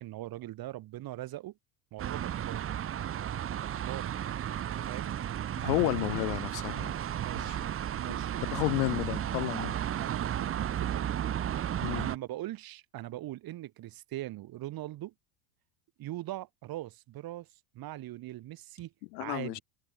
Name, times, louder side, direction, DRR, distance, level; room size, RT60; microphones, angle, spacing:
voice 1, 0.0-1.5 1.9-2.7 3.6-4.1 4.8-5.1 5.6-6.0 7.1-7.6 7.9-8.4 9.6-9.7 10.0-11.1 11.9-15.1 16.0-17.5 17.8-18.9 19.2-19.6, right 15 dB, 45° right, 5.2 m, -41 dB
sound 1, 2.0-12.2, right 10 dB, 25° right, 1.3 m, -34 dB
voice 2, 5.6-7.0 7.4-7.6 8.0-8.2 8.5-9.7 11.8-12.1 19.1-19.6, left 28 dB, 75° left, 2.5 m, -31 dB
supercardioid pair, 140°, 50 cm